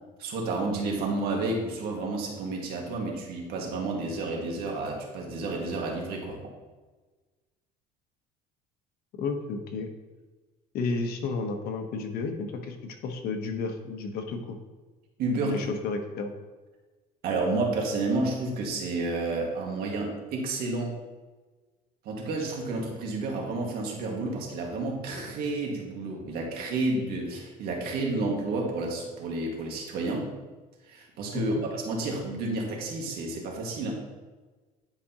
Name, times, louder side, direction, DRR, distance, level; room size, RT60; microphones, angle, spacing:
voice 1, 0.2-6.4 15.2-15.6 17.2-21.0 22.0-30.3 30.9-33.9, right 2 dB, 65° right, -1 dB, 1.8 m, -30 dB
voice 2, 9.2-9.9 10.7-14.6 15.4-16.3 31.3-31.6, left 4 dB, 65° left, 5 dB, 1.0 m, -32 dB
10.0 x 4.9 x 2.9 m, 1.3 s
cardioid pair, 125°, 17 cm